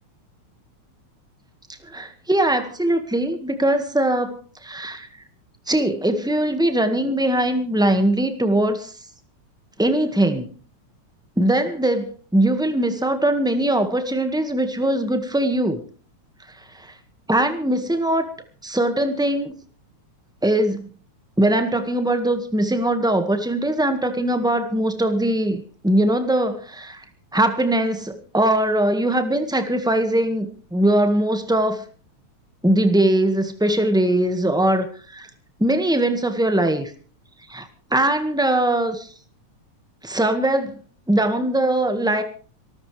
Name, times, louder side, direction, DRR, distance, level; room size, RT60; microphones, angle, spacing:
voice 1, 1.8-5.1 5.7-8.9 9.8-10.5 11.4-15.8 16.7-16.9 17.3-18.3 18.6-19.5 20.4-20.9 21.4-27.0 27.3-31.8 32.6-35.3 35.6-36.9 37.5-39.1 40.0-40.8 41.1-42.2, right 1 dB, ahead, 7 dB, 0.9 m, -21 dB
25.5 x 14.0 x 3.4 m, 0.40 s
omnidirectional pair, 3.4 m